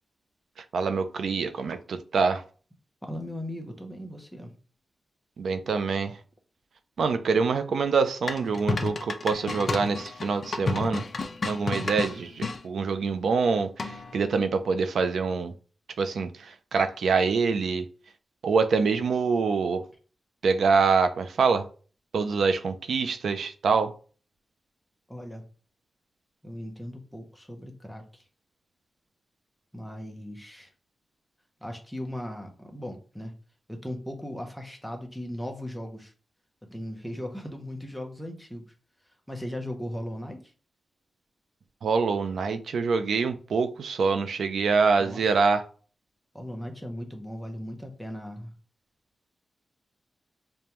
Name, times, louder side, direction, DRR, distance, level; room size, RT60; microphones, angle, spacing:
voice 1, 0.7-2.4 5.4-6.1 7.0-11.0 11.4-15.5 16.0-16.3 16.7-17.8 18.4-19.8 20.4-21.6 22.1-23.9 41.8-45.6, right 5 dB, 80° right, 0.4 m, -25 dB
voice 2, 3.0-4.5 25.1-25.5 26.4-28.2 29.7-30.7 31.6-33.3 33.7-36.1 36.7-38.7 39.3-40.4 45.0-45.3 46.3-48.5, left 1 dB, ahead, 0.6 m, -37 dB
sound 1, 8.3-12.6 13.8-14.2, left 3 dB, 40° left, 0.4 m, -31 dB
5.1 x 2.2 x 2.9 m
wide cardioid pair, 150°, 0 cm